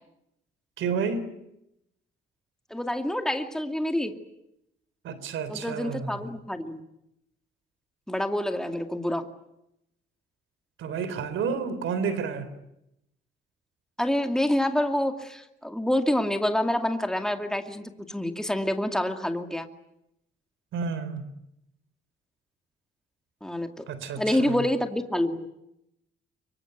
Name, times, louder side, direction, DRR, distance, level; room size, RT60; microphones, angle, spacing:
voice 1, 0.8-1.3 5.0-6.2 10.8-12.5 20.7-21.3 23.9-24.6, right 6 dB, 80° right, 3.7 m, -30 dB
voice 2, 2.7-4.2 5.5-6.8 8.1-9.3 14.0-19.7 23.4-23.8 24.2-25.5, left 1 dB, 5° left, 2.3 m, -27 dB
24.5 x 23.5 x 9.3 m
cardioid pair, 90°, 20 cm